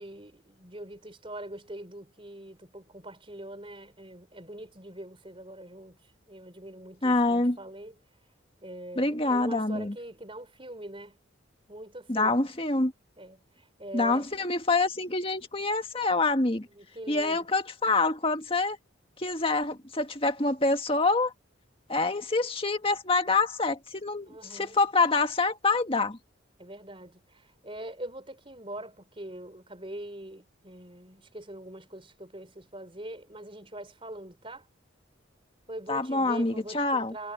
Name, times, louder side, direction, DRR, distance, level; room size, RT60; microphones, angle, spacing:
voice 1, 0.0-6.0 6.3-7.9 8.6-11.2 11.7-12.3 13.2-14.3 16.7-17.5 24.3-24.8 26.6-34.7 35.7-37.3, right 1 dB, 25° right, 4.7 m, -43 dB
voice 2, 7.0-7.6 9.0-9.9 12.1-12.9 13.9-16.7 17.1-18.8 19.2-21.3 21.9-26.2 35.9-37.1, left 3 dB, 25° left, 1.8 m, -26 dB
head